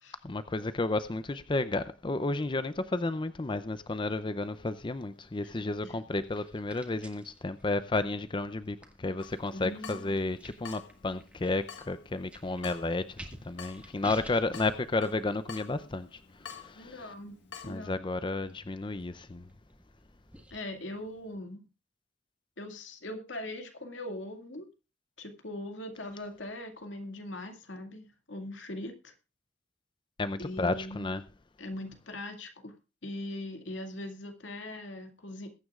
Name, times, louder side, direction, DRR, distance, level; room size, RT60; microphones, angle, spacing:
voice 1, 0.2-16.2 16.5-17.0 17.6-19.5 30.2-31.2, left 2 dB, 25° left, 0.5 m, -32 dB
sound 1, 4.4-21.3, right 1 dB, 5° right, 1.8 m, -55 dB
Water tap faucet / Drip, 9.2-17.8, left 7 dB, 70° left, 1.7 m, -50 dB
voice 2, 9.5-10.4 16.7-17.4 17.6-18.0 20.5-21.6 22.6-24.7 25.2-29.1 30.4-31.1 31.6-32.7 33.0-35.5, left 1 dB, 85° left, 2.2 m, -41 dB
21.5 x 9.4 x 2.4 m
head